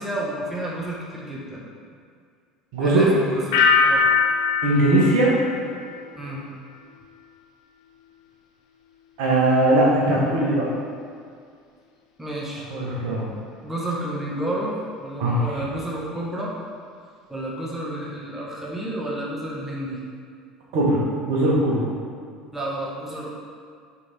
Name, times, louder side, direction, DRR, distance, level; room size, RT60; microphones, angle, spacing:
voice 1, 0.0-1.7 2.8-4.1 6.1-6.4 12.2-12.6 13.6-16.5 17.3-20.0 22.5-23.3, right 1 dB, 5° right, -5 dB, 1.4 m, -30 dB
voice 2, 2.7-3.1 4.6-5.3 9.2-10.7 12.7-13.3 15.2-15.4 20.7-21.9, right 1 dB, 60° right, -4 dB, 1.5 m, -20 dB
sound 1, 3.5-6.4 6.7-7.2, left 5 dB, 65° left, 0.5 m, -22 dB
5.0 x 4.5 x 4.4 m, 2.2 s
figure-of-eight pair, 65°, 3 cm